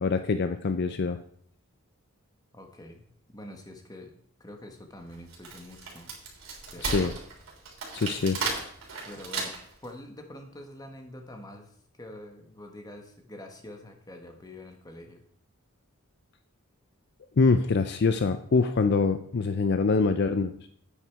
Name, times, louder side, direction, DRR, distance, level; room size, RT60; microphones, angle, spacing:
voice 1, 0.0-1.2 6.8-7.1 7.9-8.4 17.4-20.5, left 4 dB, 50° left, 9 dB, 0.5 m, -24 dB
voice 2, 2.5-4.1 4.4-6.1 6.7-7.1 9.0-9.5 9.8-15.2, left 1 dB, 20° left, 4 dB, 1.4 m, -45 dB
Wood, 5.1-9.8, right 4 dB, 65° right, 3.6 m, -34 dB
9.2 x 8.8 x 4.7 m, 0.63 s
head